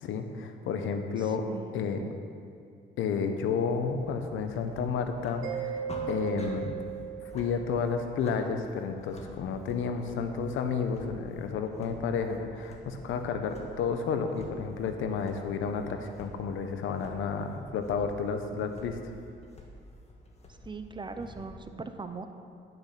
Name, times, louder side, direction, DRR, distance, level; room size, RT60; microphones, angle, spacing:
voice 1, 0.0-1.5 1.7-2.1 3.0-5.8 6.1-6.7 7.3-19.0, left 5 dB, 85° left, 7 dB, 0.9 m, -31 dB
voice 2, 1.2-1.9 20.6-22.3, right 4 dB, 25° right, 8 dB, 0.7 m, -40 dB
sound 1, 3.7-21.5, left 1 dB, 30° left, 1.6 m, -50 dB
Mallet percussion, 5.4-8.0, right 9 dB, 85° right, 1.8 m, -37 dB
10.0 x 6.8 x 5.8 m, 2.4 s
cardioid pair, 90°, 20 cm